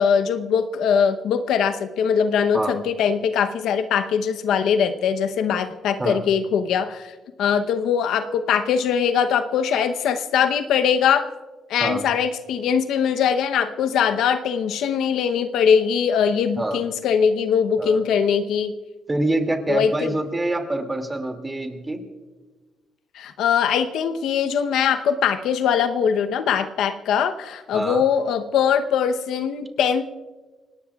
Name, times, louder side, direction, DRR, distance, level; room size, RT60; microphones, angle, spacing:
voice 1, 0.0-7.1 7.4-11.3 11.7-18.7 19.7-20.1 23.1-30.0, left 7 dB, 80° left, 8 dB, 0.8 m, -21 dB
voice 2, 19.1-22.0 27.7-28.0, right 2 dB, 15° right, 5 dB, 2.4 m, -25 dB
28.0 x 18.0 x 2.4 m, 1.3 s
cardioid pair, 90°, 0 cm